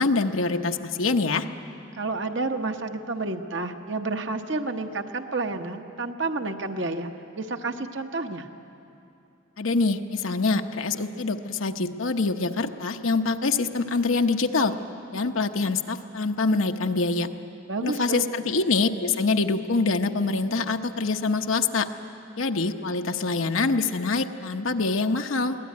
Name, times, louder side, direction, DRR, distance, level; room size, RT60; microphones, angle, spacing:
voice 1, 0.0-1.5 9.6-14.7 15.1-17.3 17.8-21.9 22.4-25.6, left 3 dB, 85° left, 5 dB, 0.9 m, -25 dB
voice 2, 2.0-8.5 17.7-18.2, right 3 dB, 65° right, 5 dB, 1.1 m, -30 dB
23.0 x 17.5 x 9.5 m, 2.8 s
head